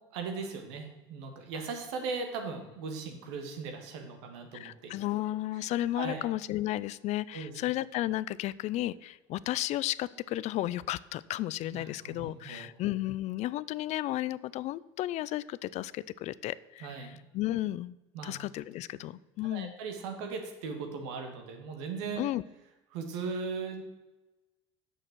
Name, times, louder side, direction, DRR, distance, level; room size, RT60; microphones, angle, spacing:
voice 1, 0.1-4.9 5.5-5.7 6.0-6.2 7.3-7.5 11.7-12.7 16.8-17.2 18.1-18.3 19.5-22.2 22.9-23.8, right 4 dB, 75° right, 5 dB, 1.7 m, -38 dB
voice 2, 4.5-17.1 17.3-18.0 18.2-19.7 22.2-22.4, left 15 dB, 55° left, 19 dB, 0.4 m, -33 dB
6.5 x 6.4 x 7.4 m, 1.1 s
hypercardioid pair, 80°, 14 cm